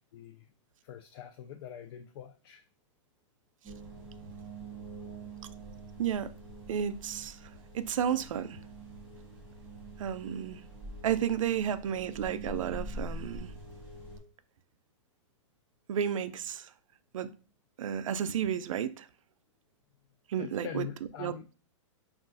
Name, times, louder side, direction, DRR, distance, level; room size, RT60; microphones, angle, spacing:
voice 1, 0.1-0.5 0.8-2.6 20.4-21.5, left 9 dB, 50° left, 0.4 m, -43 dB
sound 1, 3.6-14.2, right 1 dB, 10° right, 1.4 m, -45 dB
voice 2, 6.0-6.3 6.7-7.4 7.7-8.6 10.0-10.6 11.0-13.5 15.9-16.7 17.1-17.3 17.8-19.1 20.3-20.9 21.2-21.3, right 9 dB, 90° right, 0.4 m, -32 dB
5.3 x 2.4 x 2.5 m
hypercardioid pair, 145°, 16 cm